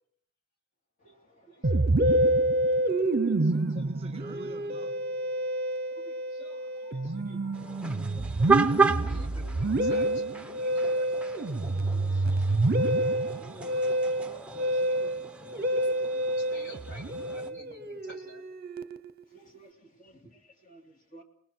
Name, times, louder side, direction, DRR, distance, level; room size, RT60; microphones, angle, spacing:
voice 1, 1.0-2.3 2.7-2.9 3.3-3.9 6.0-8.6 8.9-9.3 11.9-13.5 14.9-15.0 19.3-21.2, left 1 dB, 40° left, 3.0 m, -54 dB
Musical instrument, 1.6-19.2, right 1 dB, 45° right, 0.8 m, -28 dB
voice 2, 3.8-5.0 13.4-15.3, right 3 dB, 30° right, 1.5 m, -49 dB
sound 1, 7.5-17.5, right 4 dB, 5° right, 0.9 m, -33 dB
voice 3, 9.0-11.2 12.1-12.2 15.0-18.5, equal, 55° left, 3.2 m, -50 dB
29.5 x 19.5 x 4.5 m
head